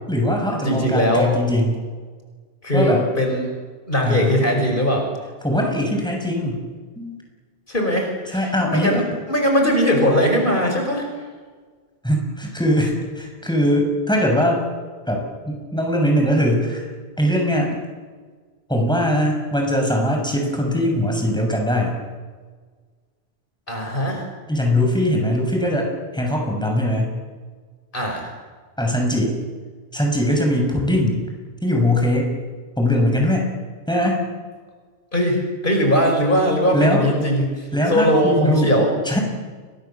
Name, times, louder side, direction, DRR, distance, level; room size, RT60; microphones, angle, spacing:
voice 1, 0.1-1.8 2.7-3.0 4.0-4.4 5.4-6.6 7.0-7.2 8.3-9.0 12.0-14.6 15.1-16.9 17.2-17.8 18.7-21.9 24.5-27.2 28.8-29.4 29.9-31.2 31.6-32.3 32.8-33.5 33.9-34.2 36.7-37.1 37.7-38.7 39.0-39.2, left 1 dB, 5° left, 1 dB, 6.6 m, -21 dB
voice 2, 0.6-1.3 2.6-3.5 3.9-5.1 7.7-8.4 8.7-11.1 23.7-24.3 27.9-28.3 35.1-38.9, equal, 55° left, 2 dB, 5.6 m, -20 dB
29.5 x 23.5 x 7.2 m, 1.5 s
omnidirectional pair, 1.1 m